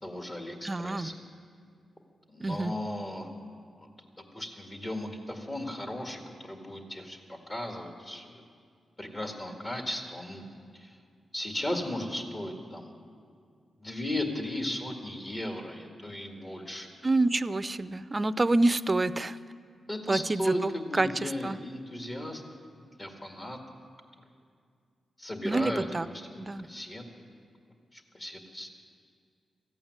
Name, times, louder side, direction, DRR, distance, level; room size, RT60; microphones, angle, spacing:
voice 1, 0.0-1.2 2.3-3.3 3.8-3.9 4.2-8.4 9.0-10.4 10.7-11.0 11.3-13.0 13.8-16.9 19.9-22.4 23.0-23.6 25.2-27.3 27.9-28.7, left 1 dB, 35° left, 3 dB, 1.9 m, -36 dB
voice 2, 0.6-1.1 2.4-2.7 17.0-19.4 20.1-21.6 25.4-26.1 26.4-26.7, right 2 dB, 35° right, 16 dB, 0.5 m, -27 dB
14.5 x 8.8 x 9.4 m, 2.2 s
cardioid pair, 50°, 0 cm